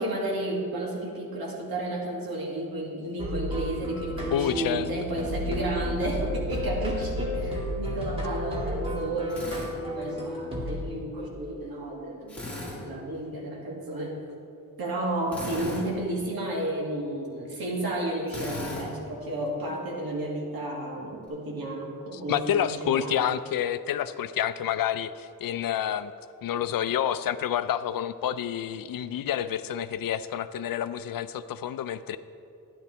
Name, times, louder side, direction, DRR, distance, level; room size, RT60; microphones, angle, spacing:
voice 1, 0.0-14.2 14.8-23.2, right 1 dB, 85° right, -2 dB, 2.2 m, -32 dB
sound 1, 3.2-10.8, equal, 15° right, 2.1 m, -32 dB
voice 2, 4.3-4.9 22.1-26.1 26.4-32.2, left 10 dB, 70° left, 13 dB, 0.5 m, -28 dB
Drill, 9.3-9.7 12.3-12.8 15.3-15.8 18.3-18.9, left 2 dB, 5° left, 2.8 m, -36 dB
12.0 x 11.0 x 3.3 m, 2.6 s
wide cardioid pair, 150°, 35 cm